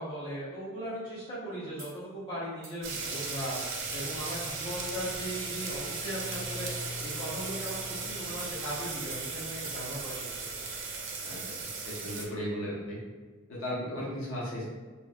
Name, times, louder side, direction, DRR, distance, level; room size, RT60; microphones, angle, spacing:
voice 1, 0.0-10.3 10.6-10.7, equal, 25° left, -11 dB, 1.2 m, -38 dB
sound 1, 1.8-2.0 2.6-2.9 3.5-3.6 3.9-4.1 4.7-5.1 5.7-5.8 6.3-6.6 7.0-7.3 7.7-9.4 9.6-9.8, right 2 dB, 15° right, 0.8 m, -48 dB
sound 2, 2.8-12.3, right 4 dB, 65° right, 0.5 m, -37 dB
sound 3, 3.8-10.8, left 2 dB, 5° left, 0.4 m, -47 dB
voice 2, 11.2-11.5 11.9-13.0 13.5-14.6, equal, 70° left, -6 dB, 0.7 m, -35 dB
3.0 x 2.5 x 2.2 m, 1.4 s
head